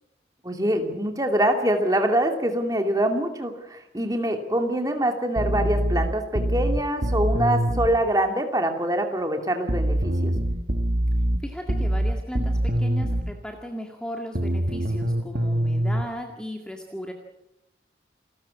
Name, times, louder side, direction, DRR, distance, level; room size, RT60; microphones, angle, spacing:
voice 1, 0.4-10.3, right 1 dB, 20° right, 5 dB, 2.7 m, -24 dB
sound 1, 5.4-7.9 9.7-13.3 14.4-16.0, right 1 dB, 55° right, 2.0 m, -24 dB
voice 2, 11.4-17.1, equal, 5° left, 2 dB, 2.1 m, -36 dB
29.0 x 13.5 x 8.4 m, 0.87 s
head